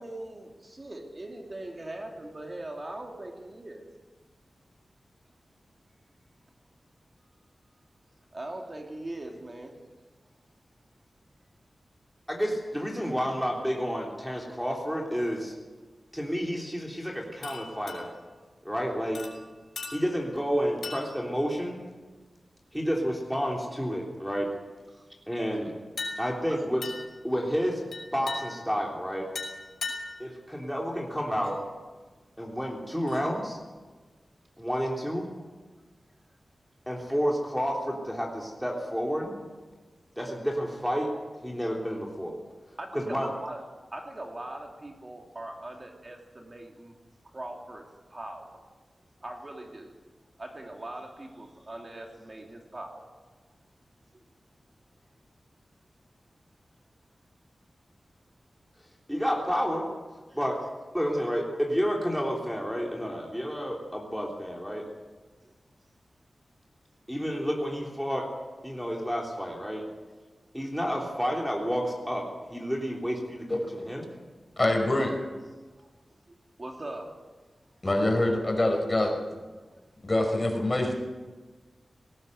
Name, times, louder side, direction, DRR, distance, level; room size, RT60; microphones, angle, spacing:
voice 1, 0.0-3.9 8.3-9.7 24.9-25.0 26.5-26.6 42.8-43.6 43.9-46.9 47.3-48.6 49.2-50.0 50.4-53.1 60.3-60.4 75.8-75.9 76.3-77.1, right 1 dB, 35° right, 1 dB, 2.9 m, -41 dB
voice 2, 12.3-15.5 16.1-18.1 18.7-19.2 19.9-21.8 22.7-24.5 25.3-25.7 26.2-26.9 27.2-27.8 28.1-29.3 30.2-31.6 32.4-33.6 34.6-35.3 36.9-39.4 40.2-41.1 41.4-42.3 42.9-43.3 59.1-59.9 60.3-60.6 60.9-64.8 67.1-68.3 68.6-69.8 70.5-73.6 73.9-74.1, equal, ahead, -1 dB, 3.4 m, -30 dB
sound 1, 17.4-18.3 19.1-20.4 20.8-21.4 21.9-22.2 26.0-26.5 26.8-27.2 27.9-28.8 29.3-30.3 31.4-31.5 33.0-33.3, left 3 dB, 90° left, 5.4 m, -39 dB
voice 3, 74.6-75.1 77.8-79.1 80.0-80.9, left 1 dB, 25° left, 3 dB, 5.2 m, -25 dB
19.5 x 18.0 x 8.0 m, 1.3 s
wide cardioid pair, 100°, 0 cm